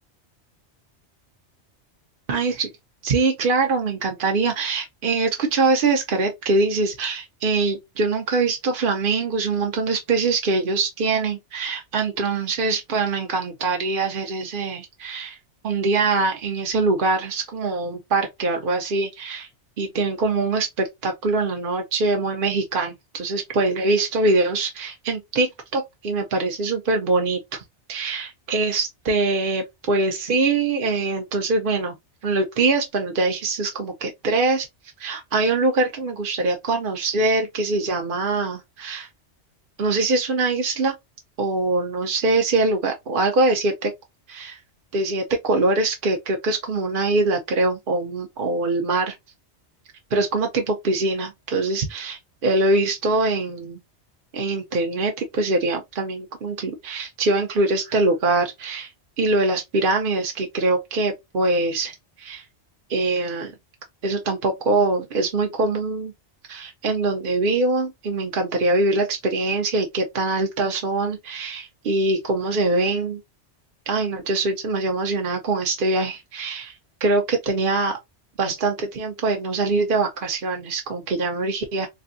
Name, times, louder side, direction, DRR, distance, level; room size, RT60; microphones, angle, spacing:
voice 1, 2.3-2.7 3.0-15.4 15.6-19.5 19.8-27.6 27.9-32.0 32.2-34.7 35.0-39.1 39.8-40.9 41.4-43.9 44.3-44.6 44.9-49.1 50.1-53.8 54.3-58.9 59.2-62.4 62.9-63.5 64.0-66.1 66.5-73.2 73.9-76.7 77.0-78.0 78.4-81.9, right 3 dB, 55° right, 0.9 m, -23 dB
3.3 x 2.6 x 2.6 m
omnidirectional pair, 1.2 m